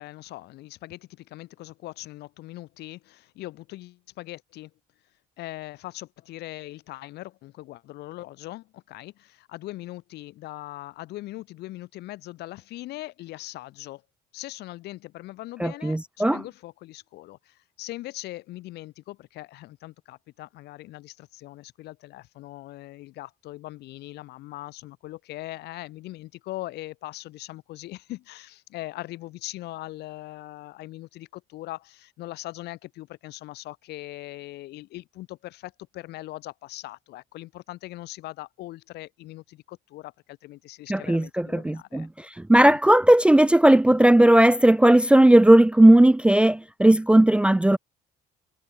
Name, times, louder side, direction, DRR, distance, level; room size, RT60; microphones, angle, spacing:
voice 1, 0.0-4.7 5.4-14.0 14.3-42.1, left 17 dB, 80° left, 1.8 m, -40 dB
voice 2, 15.6-16.4 40.9-42.1 42.5-47.8, right 1 dB, 5° right, 0.4 m, -16 dB
cardioid pair, 110°, 17 cm